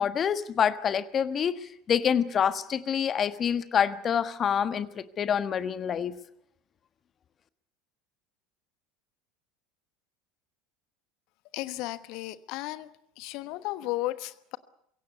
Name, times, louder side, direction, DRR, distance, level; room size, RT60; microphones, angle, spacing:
voice 1, 0.0-6.2, left 8 dB, 35° left, 13 dB, 1.4 m, -27 dB
voice 2, 11.5-12.9 13.2-14.6, left 17 dB, 55° left, 15 dB, 1.1 m, -34 dB
23.0 x 17.0 x 9.4 m, 0.73 s
figure-of-eight pair, 70°, 0 cm